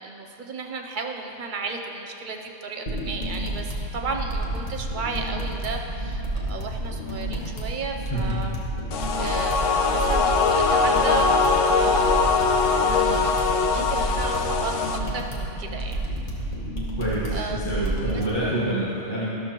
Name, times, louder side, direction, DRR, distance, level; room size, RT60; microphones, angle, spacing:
voice 1, 0.0-8.6 9.1-16.1 17.3-17.6 18.1-18.2, right 4 dB, 50° right, 3 dB, 0.7 m, -34 dB
sound 1, 2.9-18.3, right 1 dB, 40° left, 1.3 m, -30 dB
sound 2, 8.9-15.0, left 4 dB, 80° left, 1.0 m, -22 dB
voice 2, 17.0-19.3, right 1 dB, 20° left, -9 dB, 1.4 m, -27 dB
13.0 x 6.7 x 3.0 m, 3.0 s
omnidirectional pair, 1.3 m